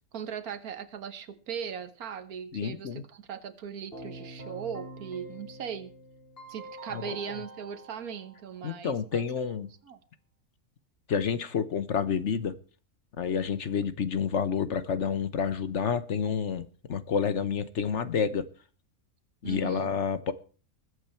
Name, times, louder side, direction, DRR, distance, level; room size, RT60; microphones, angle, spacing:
voice 1, 0.1-5.9 6.5-9.3 9.8-10.0 19.4-19.9, right 7 dB, 75° right, 1.6 m, -39 dB
voice 2, 2.5-3.0 6.9-7.1 8.6-9.7 11.1-12.5 13.2-18.5 19.4-20.3, left 6 dB, 55° left, 1.1 m, -29 dB
Keyboard (musical), 3.9-8.9, right 1 dB, 40° left, 5.1 m, -46 dB
20.5 x 8.4 x 4.4 m
omnidirectional pair, 1.6 m